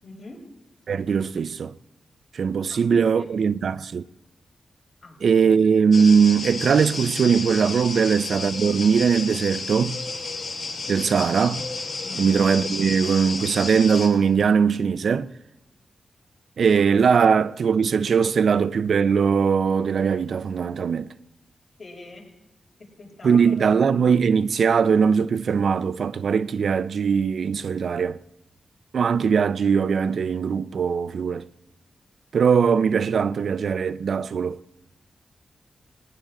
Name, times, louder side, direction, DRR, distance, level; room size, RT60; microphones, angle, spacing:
voice 1, 0.0-0.4 2.7-3.3 5.0-5.2 5.4-5.7 7.9-8.2 12.0-12.3 21.8-22.3 22.8-23.7, left 2 dB, 60° left, 6.8 m, -43 dB
voice 2, 0.9-1.7 2.3-4.0 5.2-10.0 10.9-11.7 12.2-15.3 16.6-21.1 23.2-28.2 28.9-31.5 32.3-34.6, right 6 dB, 75° right, 0.5 m, -20 dB
sound 1, 5.9-14.1, left 3 dB, 75° left, 3.4 m, -32 dB
19.0 x 19.0 x 3.8 m
cardioid pair, 80°, 0 cm